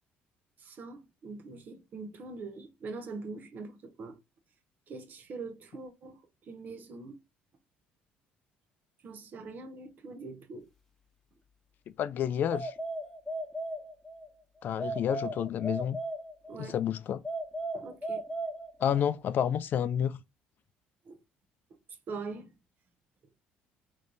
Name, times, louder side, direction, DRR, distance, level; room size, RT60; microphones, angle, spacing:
voice 1, 0.6-4.2 4.9-6.2 6.5-7.2 9.0-10.6 16.5-16.8 17.7-18.2 21.1-21.2 22.1-22.5, right 3 dB, 50° right, 1.0 m, -43 dB
voice 2, 12.0-12.7 14.6-16.0 16.6-17.2 18.8-20.2, left 9 dB, 55° left, 0.4 m, -29 dB
sound 1, 12.5-14.3 14.8-16.7 17.2-19.1, right 1 dB, 5° left, 1.3 m, -37 dB
3.4 x 3.2 x 3.9 m
supercardioid pair, 90°, 4 cm